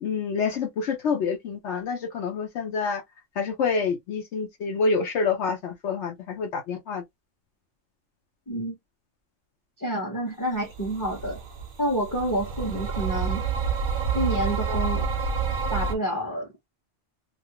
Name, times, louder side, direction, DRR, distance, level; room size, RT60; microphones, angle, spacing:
voice 1, 0.0-3.0 3.4-7.0, left 5 dB, 70° left, 0.9 m, -27 dB
voice 2, 8.5-8.8 9.8-11.4 11.8-13.5 14.1-15.1 15.7-16.5, right 1 dB, 20° left, 0.8 m, -28 dB
sound 1, 10.7-15.9, right 5 dB, 50° right, 0.7 m, -28 dB
2.6 x 2.5 x 2.8 m
omnidirectional pair, 1.2 m